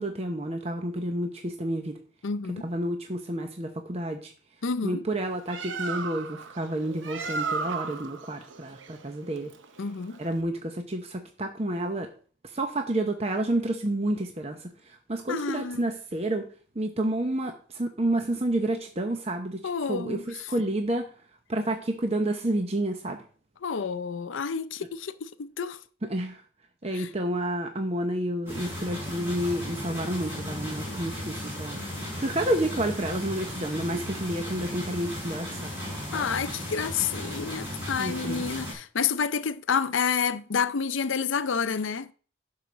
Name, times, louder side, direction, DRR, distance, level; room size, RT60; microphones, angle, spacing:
voice 1, 0.0-2.0 2.6-4.3 4.8-9.5 10.2-12.1 12.5-14.7 15.1-16.5 16.8-19.6 19.9-21.1 21.5-23.2 26.1-26.4 26.8-35.7 38.0-38.5, right 1 dB, 30° right, 0.8 m, -30 dB
voice 2, 2.2-2.7 4.6-5.0 9.8-10.2 15.3-15.9 19.6-20.5 23.6-25.8 26.9-27.1 36.1-42.1, left 6 dB, 75° left, 0.5 m, -29 dB
Bird, 5.2-10.4, right 4 dB, 70° right, 0.8 m, -35 dB
sound 1, 28.5-38.7, left 1 dB, 10° right, 5.7 m, -36 dB
11.0 x 4.8 x 6.0 m
head